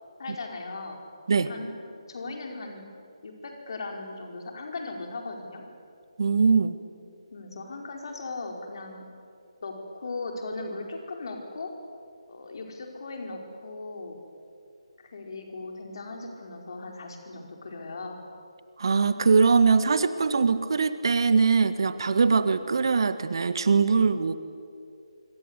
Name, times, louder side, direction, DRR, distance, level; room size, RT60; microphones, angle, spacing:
voice 1, 0.2-1.0 1.3-1.7 2.1-2.8 3.2-5.6 7.3-9.0 9.6-11.7 12.3-14.2 15.1-18.2, left 3 dB, 50° left, 2 dB, 5.0 m, -38 dB
voice 2, 6.2-6.7 18.8-24.4, right 5 dB, 50° right, 12 dB, 1.6 m, -22 dB
26.0 x 25.5 x 8.3 m, 2.4 s
figure-of-eight pair, 150°, 3 cm